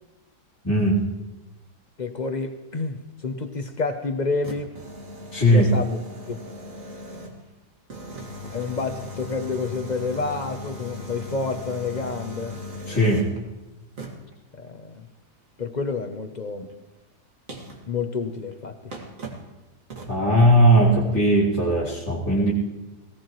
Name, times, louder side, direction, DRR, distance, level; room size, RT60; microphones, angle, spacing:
voice 1, 0.6-1.0 5.3-5.7 12.9-13.3 20.1-22.5, right 1 dB, 10° left, -9 dB, 2.4 m, -18 dB
voice 2, 2.0-4.7 5.5-6.0 6.3-6.4 8.5-12.6 14.5-15.0 15.6-16.7 17.9-18.9, left 4 dB, 50° left, 7 dB, 0.5 m, -29 dB
sound 1, 4.4-7.5 7.9-13.4 14.0-14.3 16.7-16.8 17.5-17.9 18.5-18.6 18.9-19.5 19.9-20.2, left 1 dB, 50° right, 2.3 m, -38 dB
18.0 x 17.5 x 3.1 m, 1.1 s
omnidirectional pair, 1.8 m